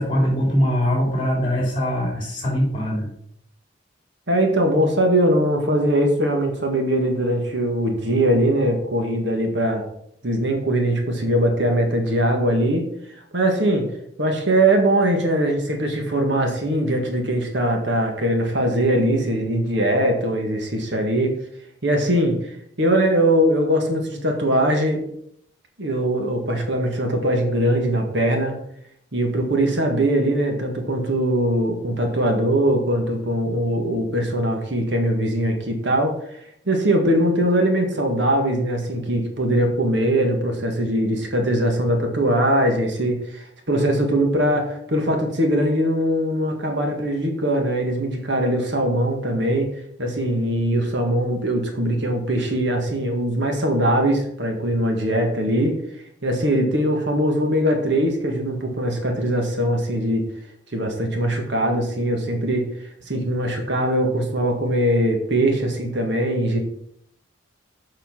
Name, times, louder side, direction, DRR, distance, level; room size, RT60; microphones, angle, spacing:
voice 1, 0.0-3.1, equal, 25° left, -2 dB, 3.3 m, -22 dB
voice 2, 4.3-9.8 10.2-12.8 13.3-13.9 14.2-21.3 21.8-22.4 22.8-25.0 25.8-28.5 29.1-36.4 36.7-49.7 50.0-55.8 56.2-60.2 60.7-62.6 63.1-66.6, right 1 dB, 60° right, 3 dB, 1.6 m, -21 dB
7.3 x 5.8 x 5.8 m, 0.71 s
head